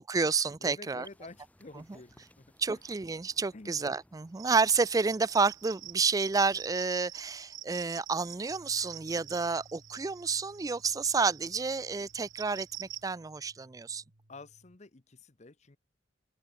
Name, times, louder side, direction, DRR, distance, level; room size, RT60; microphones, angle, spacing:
voice 1, 0.0-1.0 2.6-14.0, right 4 dB, 20° right, 0.4 m, -30 dB
voice 2, 0.6-2.8 3.5-3.8 14.3-15.8, left 3 dB, 40° left, 0.9 m, -49 dB
sound 1, 1.0-6.8, left 1 dB, 10° left, 1.9 m, -63 dB
sound 2, 4.4-13.0, right 14 dB, 85° right, 1.5 m, -47 dB
sound 3, 8.5-14.8, right 1 dB, 70° right, 2.3 m, -61 dB
open air
head